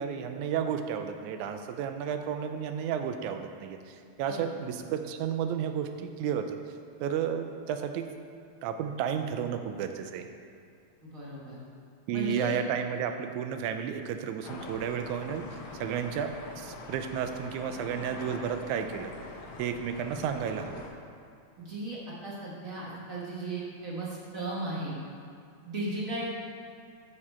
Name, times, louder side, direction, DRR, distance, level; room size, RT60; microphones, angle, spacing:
voice 1, 0.0-6.6 7.0-8.1 8.6-10.3 12.1-15.5 15.8-19.1 19.6-20.9, right 8 dB, 80° right, 7 dB, 1.9 m, -32 dB
voice 2, 4.3-4.7 11.0-11.6 12.1-12.6 20.1-20.2 21.6-25.0 25.6-26.3, right 2 dB, 45° right, -6 dB, 1.1 m, -36 dB
sound 1, 14.4-20.9, left 3 dB, 65° left, 1.6 m, -44 dB
13.5 x 4.8 x 4.3 m, 2.4 s
omnidirectional pair, 3.5 m